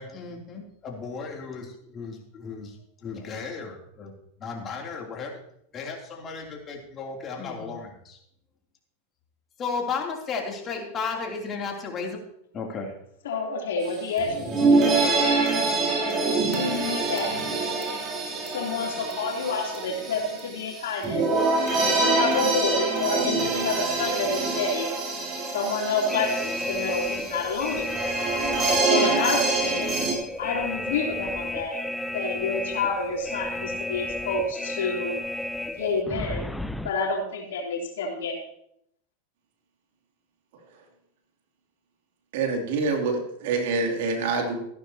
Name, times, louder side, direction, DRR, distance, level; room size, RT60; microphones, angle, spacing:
voice 1, 0.0-1.7 1.9-2.7 3.0-4.1 4.4-5.3 5.7-8.2 9.6-12.2 12.5-12.9 14.6-15.5, left 5 dB, 30° left, 0 dB, 3.0 m, -34 dB
voice 2, 13.2-15.3 16.4-17.5 18.5-21.2 21.8-24.9 25.5-28.0 28.9-30.0 30.4-31.8 32.1-35.1 35.6-36.5 36.8-38.4, left 4 dB, 80° left, 0 dB, 3.2 m, -29 dB
sound 1, 13.9-14.0 14.2-30.1, right 3 dB, 35° right, 3.1 m, -25 dB
sound 2, 26.1-36.9, left 1 dB, 5° left, 0.6 m, -32 dB
voice 3, 42.3-44.6, right 4 dB, 70° right, 2 dB, 2.7 m, -26 dB
14.5 x 11.5 x 2.9 m, 0.73 s
hypercardioid pair, 105°, 0 cm